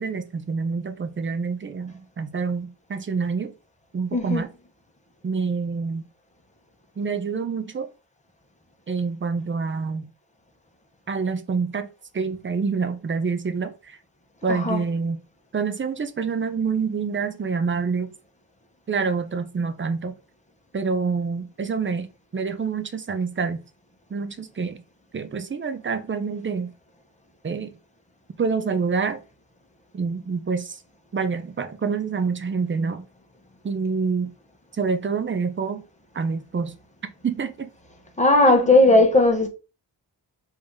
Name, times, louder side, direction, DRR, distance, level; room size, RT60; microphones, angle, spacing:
voice 1, 0.0-3.5 3.9-4.5 5.2-6.1 7.0-7.9 8.9-10.1 11.1-11.9 12.1-14.0 14.4-15.2 15.5-18.1 18.9-20.1 20.7-23.6 24.1-24.8 25.1-26.7 27.4-27.7 28.4-29.2 29.9-30.8 31.1-33.1 33.6-34.3 34.7-35.8 36.1-36.8 37.0-37.7 38.5-39.0, right 5 dB, 30° right, 0.4 m, -27 dB
voice 2, 4.1-4.4 14.5-14.8 38.2-39.5, left 2 dB, 15° left, 0.8 m, -17 dB
3.4 x 2.7 x 3.5 m
wide cardioid pair, 135°, 44 cm